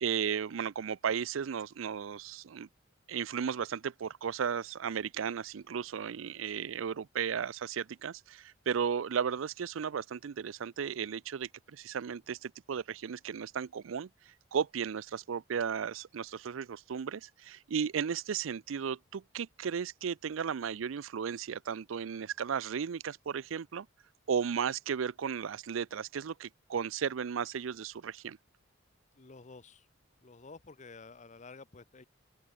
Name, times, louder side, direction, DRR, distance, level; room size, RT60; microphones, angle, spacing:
voice 1, 0.0-2.7 3.1-23.9 24.3-28.4, right 7 dB, 90° right, 0.5 m, -35 dB
voice 2, 29.2-29.9 30.2-32.0, left 4 dB, 40° left, 0.8 m, -51 dB
open air
head